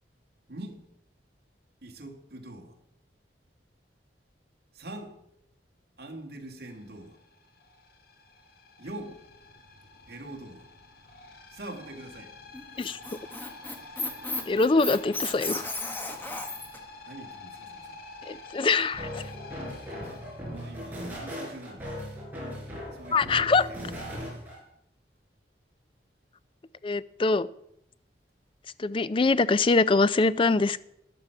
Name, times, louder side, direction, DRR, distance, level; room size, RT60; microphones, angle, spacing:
voice 1, 0.5-0.8 1.8-2.7 4.7-5.1 6.0-7.2 8.8-9.2 10.1-10.7 11.5-12.3 17.1-18.0 19.8-20.2 20.5-21.9 22.9-24.1, right 1 dB, 60° right, 1 dB, 2.2 m, -43 dB
sound 1, 6.6-21.2, left 3 dB, 55° left, 1.8 m, -48 dB
Squeak, 12.5-16.8, left 2 dB, 10° left, 1.2 m, -34 dB
voice 2, 14.5-15.6 18.3-19.1 23.1-23.7 26.8-27.5 28.8-30.8, left 3 dB, 30° left, 16 dB, 0.4 m, -23 dB
sound 2, 18.9-24.6, equal, 10° right, 4.6 m, -38 dB
13.0 x 9.1 x 5.8 m, 0.75 s
head